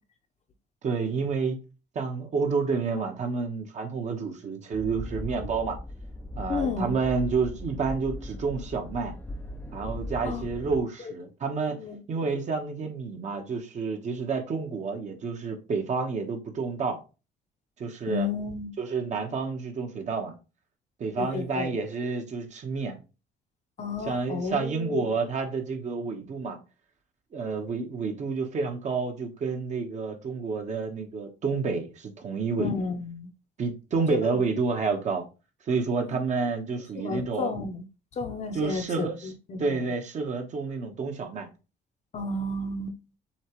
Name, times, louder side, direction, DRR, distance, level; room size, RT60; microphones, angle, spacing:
voice 1, 0.8-1.6 1.9-5.8 6.4-9.1 9.7-11.8 12.1-17.0 17.8-18.3 18.8-20.3 21.0-23.0 24.0-26.6 27.3-32.7 33.6-35.2 35.7-37.5 38.5-39.3 39.6-41.5, right 4 dB, 45° right, 1.1 m, -29 dB
sound 1, 4.7-10.8, left 1 dB, 10° left, 0.5 m, -38 dB
voice 2, 6.5-6.9 10.3-10.5 11.5-12.0 18.1-18.7 21.2-21.7 23.8-25.1 32.6-33.3 34.1-34.4 35.9-36.2 37.0-37.9 38.2-39.9 42.1-43.0, left 4 dB, 40° left, 0.8 m, -32 dB
7.1 x 2.4 x 3.0 m
cardioid pair, 110°, 17 cm